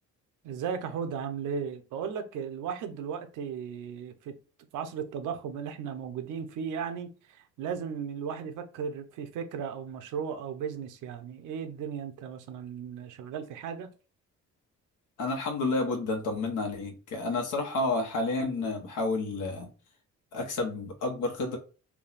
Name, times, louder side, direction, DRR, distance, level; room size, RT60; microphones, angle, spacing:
voice 1, 0.4-4.4 4.7-13.9, right 7 dB, 90° right, 0.7 m, -36 dB
voice 2, 15.2-19.7 20.3-21.6, left 3 dB, 85° left, 1.2 m, -30 dB
3.5 x 2.3 x 4.0 m
cardioid pair, 90°, 30 cm